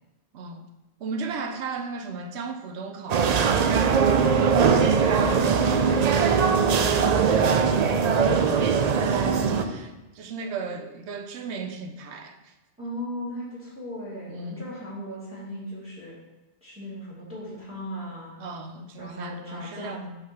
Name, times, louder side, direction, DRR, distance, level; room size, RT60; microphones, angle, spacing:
voice 1, 0.3-0.7 1.0-3.5 4.7-6.6 8.9-12.5 14.3-14.6 18.4-20.0, right 4 dB, 75° right, 5 dB, 0.9 m, -36 dB
sound 1, 3.1-9.6, right 6 dB, 60° right, 0.4 m, -21 dB
voice 2, 4.0-5.1 6.6-8.5 12.8-16.1 16.6-18.3 19.0-20.1, equal, 5° right, -7 dB, 1.7 m, -37 dB
5.7 x 3.8 x 5.7 m, 1.0 s
omnidirectional pair, 1.1 m